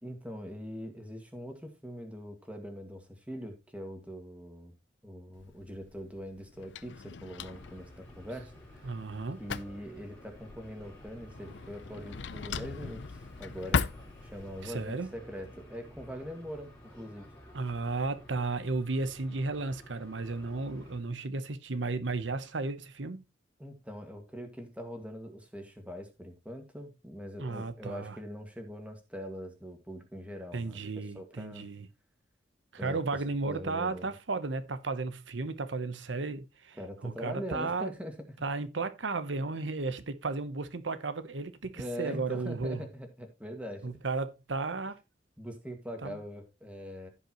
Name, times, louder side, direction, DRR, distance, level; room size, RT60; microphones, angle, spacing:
voice 1, 0.0-4.7 5.0-9.0 9.4-13.8 14.2-17.3 23.6-30.8 31.1-31.7 32.8-33.0 33.5-34.1 36.8-38.1 41.8-43.9 45.4-47.1, equal, 5° right, 1.9 m, -42 dB
Drawer open or close, 5.3-14.7, left 5 dB, 70° left, 0.6 m, -39 dB
sound 1, 7.4-21.0, equal, 10° left, 4.0 m, -52 dB
voice 2, 8.8-9.4 14.6-15.1 17.5-23.2 27.4-28.2 30.5-31.9 32.7-36.8 37.0-37.9 38.4-42.9 43.8-45.0 46.0-46.2, right 3 dB, 75° right, 0.9 m, -34 dB
15.0 x 5.5 x 3.0 m
head